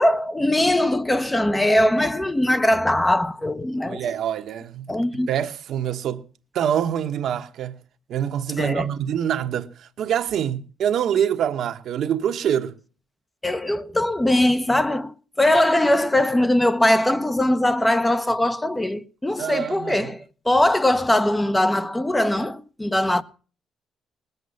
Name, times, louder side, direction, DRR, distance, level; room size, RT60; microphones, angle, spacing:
voice 1, 0.0-4.0 4.9-5.3 8.6-8.9 13.4-23.2, left 1 dB, 15° left, 0.9 m, -21 dB
voice 2, 3.8-4.9 5.3-6.2 6.5-7.8 8.1-12.7 19.4-20.1, right 9 dB, 70° right, 1.1 m, -25 dB
20.0 x 8.1 x 7.0 m
cardioid pair, 90°, 0 cm